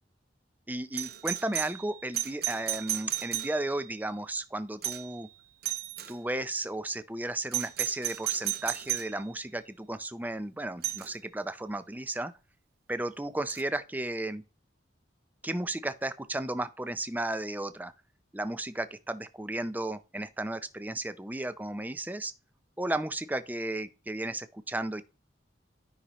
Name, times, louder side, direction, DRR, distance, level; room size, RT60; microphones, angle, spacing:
voice 1, 0.7-5.3 6.1-12.3 12.9-14.4 15.4-17.9 18.3-22.3 22.8-25.0, right 1 dB, 10° right, 0.5 m, -34 dB
Doorbell, 0.9-3.9 4.8-5.2 5.6-6.1 7.5-9.2 10.8-11.1 13.5-13.6, right 13 dB, 50° right, 0.7 m, -34 dB
13.0 x 5.5 x 3.0 m
head